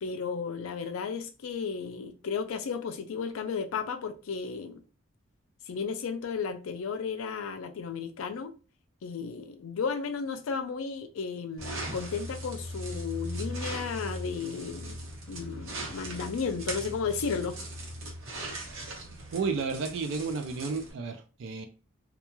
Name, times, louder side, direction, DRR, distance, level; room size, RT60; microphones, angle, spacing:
voice 1, 0.0-4.8 5.7-8.5 9.0-15.0 15.3-17.6, left 5 dB, 85° left, 0.4 m, -34 dB
sound 1, 11.6-20.9, right 1 dB, 85° right, 0.9 m, -39 dB
voice 2, 19.3-21.7, right 4 dB, 65° right, 0.4 m, -32 dB
2.3 x 2.2 x 2.9 m
head